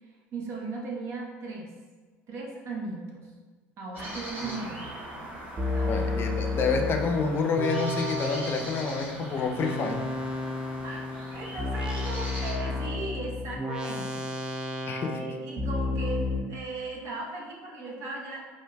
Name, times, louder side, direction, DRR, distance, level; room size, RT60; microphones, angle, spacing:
voice 1, 0.3-1.7 2.3-3.3 3.8-4.9 5.7-6.1 9.3-9.5 10.8-11.0 11.3-14.3 15.0-18.4, right 3 dB, 55° right, -1 dB, 0.8 m, -37 dB
sound 1, 3.9-12.5, equal, 35° right, 1.3 m, -41 dB
sound 2, 4.4-4.8 5.6-9.0 9.6-16.4, left 2 dB, 15° right, 0.5 m, -32 dB
voice 2, 5.8-10.1 14.9-15.3, left 4 dB, 40° left, 3 dB, 0.5 m, -28 dB
4.5 x 2.5 x 2.2 m, 1.4 s
supercardioid pair, 90°, 6 cm